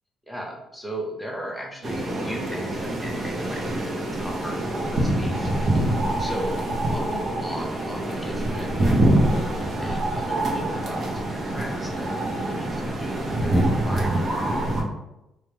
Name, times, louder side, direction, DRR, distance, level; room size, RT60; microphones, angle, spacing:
voice 1, 0.3-5.5 6.2-9.1 9.3-12.1 12.5-14.7, equal, ahead, 0 dB, 0.6 m, -36 dB
sound 1, 1.8-14.8, right 1 dB, 50° right, 0.6 m, -25 dB
2.3 x 2.0 x 3.1 m, 0.91 s
cardioid pair, 90°, 0 cm